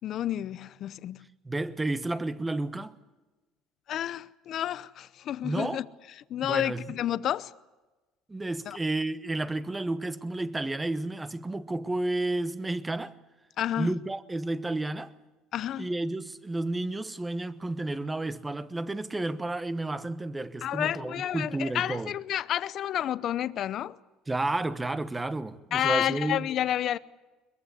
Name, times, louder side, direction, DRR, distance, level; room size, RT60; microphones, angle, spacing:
voice 1, 0.0-1.2 3.9-5.8 6.3-7.5 8.7-8.8 13.6-13.9 15.5-15.9 20.6-24.0 25.7-27.0, left 11 dB, 50° left, 0.7 m, -30 dB
voice 2, 1.4-2.9 5.4-5.8 6.4-6.9 8.3-13.1 13.8-15.1 15.8-22.1 24.3-26.5, right 2 dB, 10° right, 1.1 m, -31 dB
22.0 x 22.0 x 8.4 m
cardioid pair, 125°, 0 cm